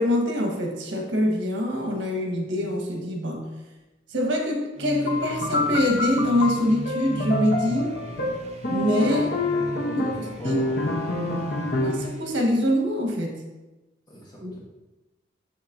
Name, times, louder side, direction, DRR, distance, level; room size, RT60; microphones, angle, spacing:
voice 1, 0.0-3.4 4.1-7.9 8.7-9.4 10.0-10.6 11.8-13.4 14.4-14.6, left 1 dB, 90° right, 1 dB, 1.3 m, -24 dB
sound 1, 4.8-12.6, right 1 dB, 35° right, 0.7 m, -37 dB
sound 2, 5.1-12.1, left 2 dB, 55° left, 0.8 m, -27 dB
voice 2, 9.5-10.9 14.1-14.6, right 1 dB, 20° left, -5 dB, 1.1 m, -40 dB
7.2 x 6.4 x 2.6 m, 1.1 s
head